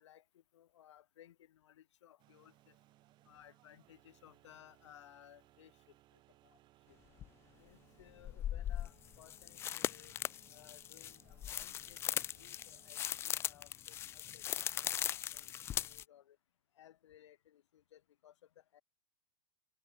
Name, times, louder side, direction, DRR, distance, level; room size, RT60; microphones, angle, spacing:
voice 1, 0.0-2.8 3.2-5.9 6.4-6.6 6.9-7.0 7.6-10.1 10.5-14.4 14.7-15.5 15.8-16.4 16.7-18.8, left 11 dB, 70° left, 6.4 m, -61 dB
sound 1, 2.2-13.5, right 16 dB, 30° right, 6.1 m, -68 dB
sound 2, 7.2-7.3 8.2-16.0, left 11 dB, 15° left, 0.4 m, -39 dB
hypercardioid pair, 150°, 16 cm